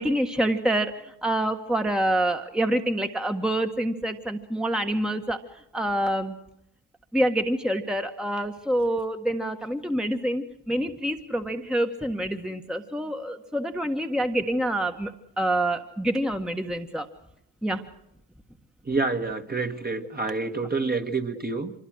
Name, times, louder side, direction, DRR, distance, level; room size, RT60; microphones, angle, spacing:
voice 1, 0.0-5.4 5.7-6.4 7.1-15.1 15.4-17.1 17.6-17.8, right 1 dB, ahead, 5 dB, 1.6 m, -26 dB
voice 2, 18.9-21.7, right 3 dB, 20° right, 5 dB, 1.9 m, -28 dB
25.0 x 21.0 x 6.5 m, 0.81 s
supercardioid pair, 60°, 45 cm